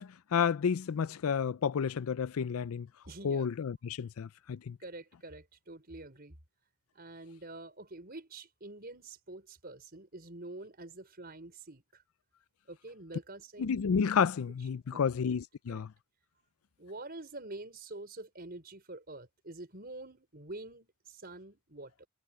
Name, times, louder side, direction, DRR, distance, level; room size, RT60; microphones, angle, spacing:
voice 1, 0.0-2.9 3.2-4.8 13.6-15.9, left 6 dB, 75° left, 0.4 m, -31 dB
voice 2, 3.1-3.5 4.8-6.4 6.9-12.0 12.7-13.7 14.9-15.0 15.7-15.8 16.8-22.1, right 2 dB, 45° right, 5.2 m, -47 dB
head